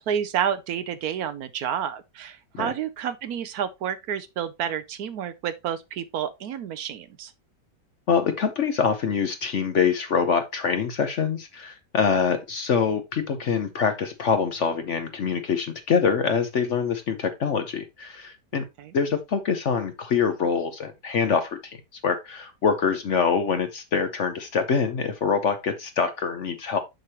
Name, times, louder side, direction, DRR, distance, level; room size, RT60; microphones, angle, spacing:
voice 1, 0.0-7.3 18.8-18.9, right 9 dB, 70° right, 1.0 m, -30 dB
voice 2, 8.1-18.7 18.9-21.8 22.0-26.8, left 6 dB, 55° left, 0.9 m, -25 dB
6.6 x 6.2 x 2.9 m
omnidirectional pair, 1.8 m